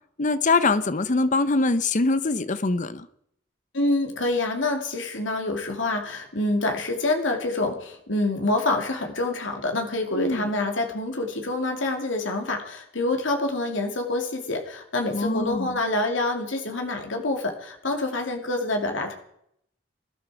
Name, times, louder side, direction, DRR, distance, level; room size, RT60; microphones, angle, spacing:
voice 1, 0.2-3.1 10.1-10.5 15.1-15.8, left 3 dB, 40° left, 0.7 m, -23 dB
voice 2, 3.7-19.1, left 2 dB, 75° left, 2.5 m, -26 dB
20.5 x 12.5 x 4.8 m
head